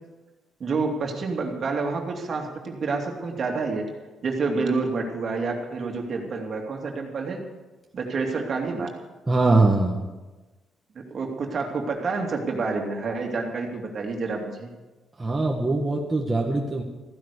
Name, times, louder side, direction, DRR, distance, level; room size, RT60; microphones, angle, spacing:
voice 1, 0.6-3.9 4.2-7.4 7.9-8.9 10.9-14.7, right 4 dB, 50° right, 2 dB, 2.7 m, -28 dB
voice 2, 9.3-10.0 15.2-16.8, right 2 dB, 20° right, -1 dB, 1.8 m, -22 dB
15.0 x 10.5 x 6.8 m, 1.2 s
cardioid pair, 90°, 0 cm